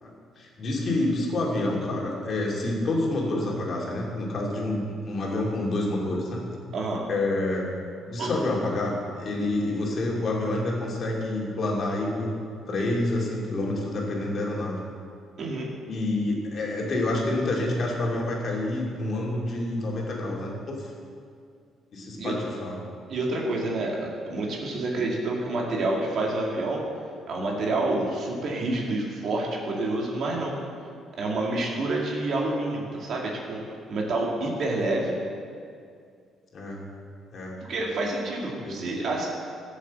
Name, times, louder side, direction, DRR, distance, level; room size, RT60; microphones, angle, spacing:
voice 1, 0.0-6.4 7.1-7.7 8.1-12.3 12.7-14.8 15.9-20.9 21.9-22.8 36.5-36.8 37.3-37.6 38.6-38.8, left 2 dB, 35° left, -2 dB, 2.5 m, -28 dB
voice 2, 6.7-7.0 8.2-8.3 15.4-15.7 22.2-22.4 23.1-24.0 24.3-26.8 27.3-30.6 31.2-33.6 33.9-35.2 37.7-39.3, right 2 dB, 45° right, -2 dB, 2.2 m, -28 dB
12.5 x 7.4 x 8.3 m, 2.3 s
cardioid pair, 175°, 0 cm